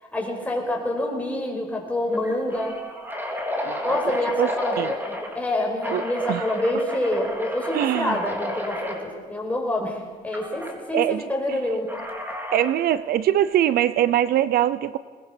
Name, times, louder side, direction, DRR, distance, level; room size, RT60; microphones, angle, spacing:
voice 1, 0.1-2.8 3.8-4.8 5.1-11.9, left 1 dB, 10° left, 0 dB, 5.4 m, -27 dB
sound 1, 0.9-1.1 1.4-1.5 2.1-5.4 5.8-9.0 10.3-10.7 11.9-12.8, left 1 dB, 10° right, 3.6 m, -32 dB
voice 2, 3.6-4.0 4.4-4.5 4.8-4.9 5.9-6.0 6.3-6.4 7.7-8.2 10.9-11.2 11.5-11.6 12.5-15.0, right 12 dB, 65° right, 16 dB, 0.7 m, -22 dB
21.5 x 20.5 x 6.0 m, 1.4 s
cardioid pair, 110°, 17 cm